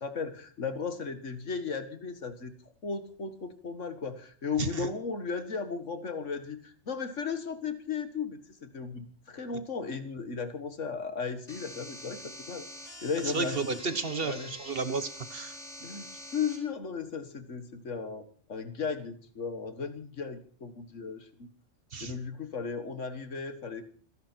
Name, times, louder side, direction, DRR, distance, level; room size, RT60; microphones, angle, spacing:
voice 1, 0.0-2.5 2.8-12.7 13.0-13.8 14.2-14.5 15.8-16.1 16.3-21.5 22.0-23.8, left 5 dB, 75° left, 10 dB, 2.0 m, -36 dB
voice 2, 4.6-4.9 13.2-15.6 21.9-22.1, right 4 dB, 50° right, 12 dB, 1.4 m, -32 dB
sound 1, 11.5-16.6, equal, 30° left, 4.8 m, -45 dB
27.0 x 11.0 x 4.5 m, 0.43 s
omnidirectional pair, 1.3 m